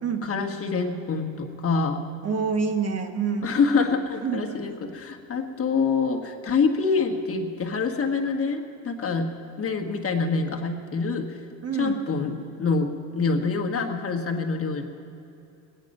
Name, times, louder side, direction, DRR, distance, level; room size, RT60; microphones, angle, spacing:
voice 1, 0.2-2.0 3.4-9.3 9.6-11.4 11.7-14.9, left 4 dB, 35° left, 3 dB, 1.2 m, -26 dB
voice 2, 2.2-3.5 4.1-4.7 11.6-12.0, right 5 dB, 40° right, 6 dB, 1.3 m, -27 dB
21.5 x 9.1 x 5.3 m, 2.7 s
cardioid pair, 115°, 38 cm